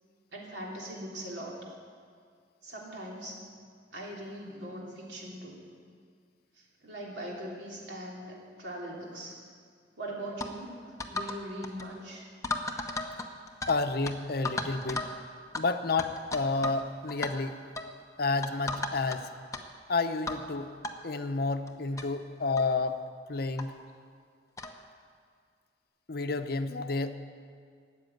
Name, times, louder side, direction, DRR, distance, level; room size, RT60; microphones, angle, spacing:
voice 1, 0.3-1.6 2.6-3.4 3.9-5.6 6.8-9.4 10.0-12.3, right 1 dB, 90° right, -2 dB, 3.2 m, -41 dB
sound 1, 10.4-10.5 11.0-11.4 11.6-11.9 12.4-13.8 14.0-14.1 14.4-15.1 15.5-15.6 16.0-16.8 17.1-17.3 17.8-17.9 18.4-19.2 19.5-19.6 20.3-20.4 20.8-20.9 21.7-21.8 22.0-22.1 22.6-22.7 23.6-23.7 24.6-24.8, left 2 dB, 20° left, 0.9 m, -34 dB
voice 2, 13.7-15.1 15.6-17.6 18.2-19.3 19.9-20.7 21.0-23.0 23.3-23.7 26.1-27.1, left 3 dB, 60° left, 8 dB, 0.8 m, -30 dB
13.0 x 8.5 x 9.2 m, 2.1 s
head